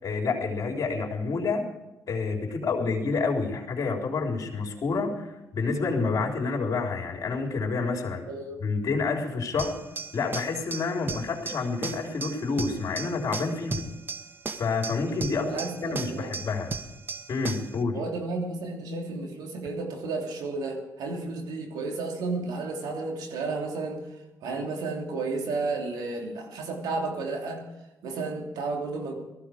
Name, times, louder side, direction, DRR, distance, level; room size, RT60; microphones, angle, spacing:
voice 1, 0.0-1.6 2.1-8.3 8.6-9.7 10.1-13.9 14.6-16.8 17.3-18.0, left 4 dB, 55° left, 0 dB, 3.7 m, -28 dB
voice 2, 8.3-8.6 15.4-16.3 17.9-24.0 24.4-27.6 28.0-29.1, right 3 dB, 80° right, 2 dB, 3.1 m, -32 dB
sound 1, 9.6-17.8, right 4 dB, 30° right, 1.5 m, -37 dB
18.0 x 15.0 x 5.0 m, 1.0 s
cardioid pair, 70°, 7 cm